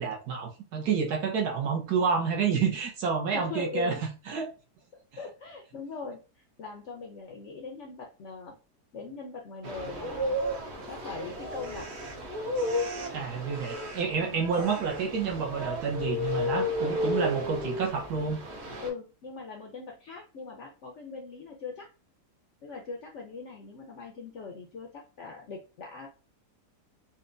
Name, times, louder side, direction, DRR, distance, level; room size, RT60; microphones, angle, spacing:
voice 1, 0.0-3.9 4.3-4.5 13.1-18.4, right 6 dB, 70° right, 1.3 m, -29 dB
voice 2, 3.3-4.0 4.9-8.6 8.9-10.4 10.9-11.9 14.1-14.4 18.8-21.9 22.6-26.1, left 4 dB, 65° left, 0.7 m, -40 dB
sound 1, 9.6-18.9, left 1 dB, 50° right, 0.9 m, -33 dB
4.1 x 2.2 x 2.5 m
omnidirectional pair, 1.8 m